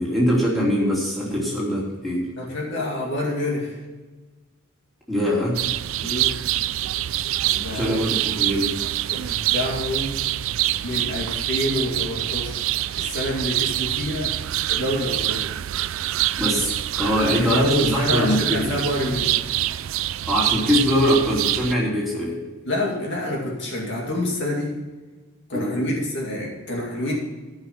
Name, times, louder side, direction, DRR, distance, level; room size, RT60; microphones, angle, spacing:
voice 1, 0.0-2.3 5.1-5.6 7.7-8.8 16.4-18.8 20.2-22.4 25.5-25.9, equal, ahead, -6 dB, 3.1 m, -22 dB
voice 2, 2.4-3.8 6.0-6.4 7.4-8.0 9.1-10.2 10.8-12.6 13.0-14.4 14.7-15.5 17.3-19.4 22.6-24.8 25.5-27.2, left 1 dB, 55° left, -2 dB, 2.3 m, -27 dB
sound 1, 5.6-21.7, right 14 dB, 65° right, 0.3 m, -25 dB
14.5 x 5.9 x 5.9 m, 1.3 s
head